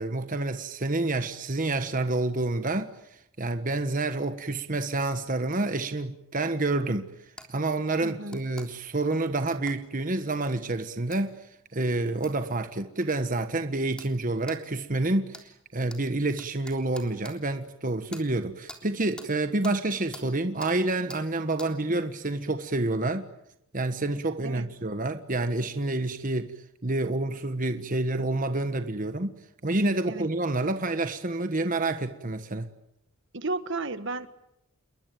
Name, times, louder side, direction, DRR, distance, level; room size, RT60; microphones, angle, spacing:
voice 1, 0.0-7.1 7.5-11.4 11.7-23.3 23.7-26.5 26.8-32.7, right 2 dB, 40° right, 1.4 m, -28 dB
sound 1, 7.4-7.5 8.3-8.7 9.7-9.8 11.1-11.2 12.2-12.4 13.0-13.1 14.0-14.1 14.5-14.6 15.3-15.5 15.9-16.0 16.4-17.4 18.1-18.3 18.7-18.8 19.2-19.3 19.6-19.8 20.1-20.3 20.6-20.7 21.1-21.2 21.6-21.7, left 1 dB, 5° left, 3.5 m, -44 dB
voice 2, 8.0-8.4 21.9-22.0 24.4-24.6 30.1-30.3 33.3-34.3, right 3 dB, 60° right, 1.6 m, -33 dB
29.0 x 22.0 x 9.3 m
head